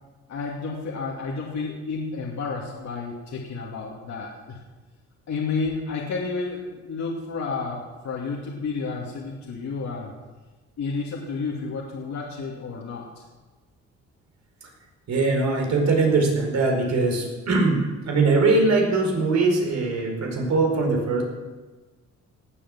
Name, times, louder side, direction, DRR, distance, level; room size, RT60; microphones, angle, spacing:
voice 1, 0.3-4.6 5.3-10.1 10.8-13.2, left 4 dB, 65° left, -3 dB, 2.6 m, -31 dB
voice 2, 15.1-21.2, right 3 dB, 60° right, 1 dB, 4.7 m, -21 dB
18.0 x 8.6 x 7.4 m, 1.3 s
cardioid pair, 90°, 30 cm